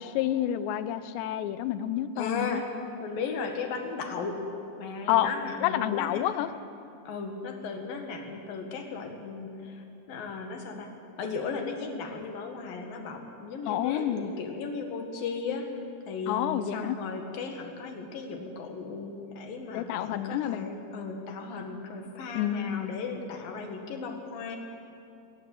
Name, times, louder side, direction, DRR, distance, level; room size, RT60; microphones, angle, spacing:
voice 1, 0.0-2.6 5.1-5.3 5.6-6.5 13.7-14.3 16.3-17.0 19.7-20.7 22.3-22.9, left 12 dB, 80° left, 13 dB, 3.0 m, -29 dB
voice 2, 2.2-2.7 3.0-4.4 4.8-6.3 7.0-10.9 11.2-15.7 16.1-24.6, left 4 dB, 60° left, 4 dB, 3.3 m, -36 dB
21.0 x 18.0 x 8.5 m, 2.6 s
omnidirectional pair, 5.1 m